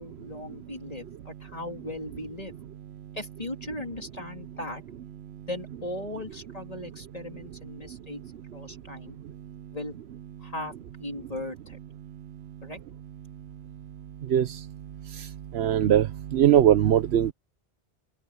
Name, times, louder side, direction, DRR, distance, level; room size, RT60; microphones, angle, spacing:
voice 1, 0.0-2.5 3.1-4.8 5.5-8.2 8.5-9.2 9.7-9.9 10.4-11.8 12.6-12.8, left 1 dB, 35° left, 3.3 m, -38 dB
voice 2, 15.5-16.1 16.3-17.3, right 10 dB, 80° right, 1.0 m, -19 dB
open air
omnidirectional pair, 1.1 m